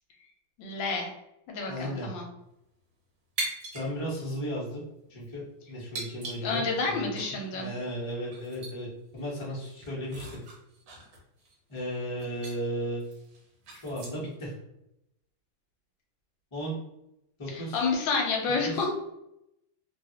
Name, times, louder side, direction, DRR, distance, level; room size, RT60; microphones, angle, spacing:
voice 1, 0.6-1.1 1.5-2.3 6.4-7.7 17.5-18.9, left 4 dB, 75° left, 1 dB, 1.3 m, -29 dB
voice 2, 1.7-2.1 3.7-4.8 5.1-7.1 7.5-10.4 11.7-13.1 13.8-14.5 16.5-16.7 17.4-17.8 18.6-18.7, equal, 35° left, -6 dB, 0.4 m, -35 dB
sound 1, 3.4-3.9 4.2-4.3 5.0-5.3 5.9-6.9 7.2-7.3 7.8-7.9 8.3-8.8 9.2-9.3 9.7-11.8 12.2-12.6 13.0-14.3, right 3 dB, 70° right, 1.5 m, -39 dB
3.2 x 2.4 x 2.7 m, 0.85 s
omnidirectional pair, 2.2 m